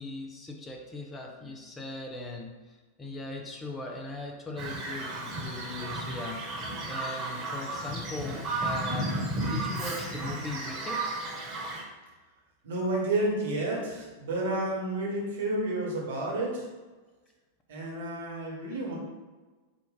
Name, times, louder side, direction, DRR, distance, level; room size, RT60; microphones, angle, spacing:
voice 1, 0.0-6.4 6.9-11.2, left 2 dB, 15° left, 1 dB, 0.6 m, -39 dB
Bird vocalization bird call bird song, 4.6-11.8, right 1 dB, 30° right, 1.2 m, -33 dB
voice 2, 12.6-16.7 17.7-19.0, right 2 dB, 60° right, -3 dB, 1.2 m, -30 dB
4.4 x 2.5 x 3.7 m, 1.3 s
figure-of-eight pair, 90°, 0 cm